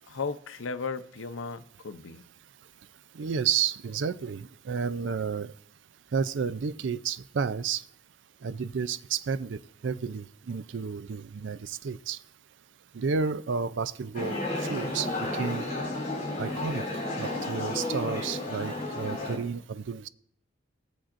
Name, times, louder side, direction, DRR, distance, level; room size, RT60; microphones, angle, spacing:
voice 1, 0.1-2.2, left 4 dB, 90° left, 0.6 m, -35 dB
voice 2, 3.1-5.5 6.1-7.8 8.4-12.2 12.9-15.7 16.4-16.9 17.2-20.1, right 6 dB, 65° right, 0.4 m, -31 dB
sound 1, 14.1-19.4, left 2 dB, 40° left, 3.5 m, -32 dB
19.0 x 8.6 x 2.6 m
head